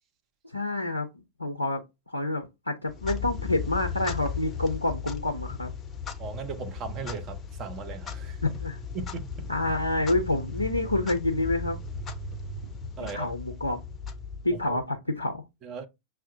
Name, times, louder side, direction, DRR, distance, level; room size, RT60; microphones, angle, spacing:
voice 1, 0.5-1.1 1.4-5.7 8.4-8.8 9.5-11.8 13.1-13.8 14.4-15.4, left 2 dB, 85° left, 0.4 m, -28 dB
Clock, 2.9-14.8, left 5 dB, 25° left, 0.5 m, -36 dB
voice 2, 6.2-8.4 8.9-9.5 13.0-13.3 14.5-14.8 15.6-15.9, right 5 dB, 35° right, 0.6 m, -37 dB
5.9 x 2.0 x 2.6 m
figure-of-eight pair, 90°, 0 cm